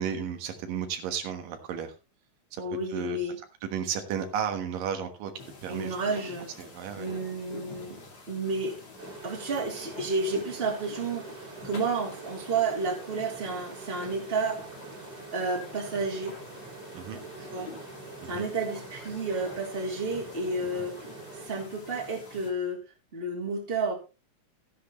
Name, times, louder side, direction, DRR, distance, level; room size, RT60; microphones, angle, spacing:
voice 1, 0.0-1.9 2.5-2.6 2.9-3.2 3.6-5.3 5.6-6.2 6.6-7.1 16.9-17.2 18.2-18.4 20.8-20.9, right 8 dB, 85° right, 6 dB, 3.1 m, -33 dB
voice 2, 2.6-3.4 5.7-6.5 7.0-8.0 8.3-8.8 9.2-11.4 11.6-14.7 15.3-16.3 17.5-17.7 18.2-20.9 21.3-22.8 23.1-23.9, right 3 dB, 20° right, -1 dB, 2.6 m, -31 dB
sound 1, 5.4-22.5, left 3 dB, 35° left, 2.5 m, -47 dB
sound 2, 9.0-21.5, right 3 dB, 35° right, 3.0 m, -45 dB
14.0 x 10.5 x 3.1 m, 0.30 s
omnidirectional pair, 3.8 m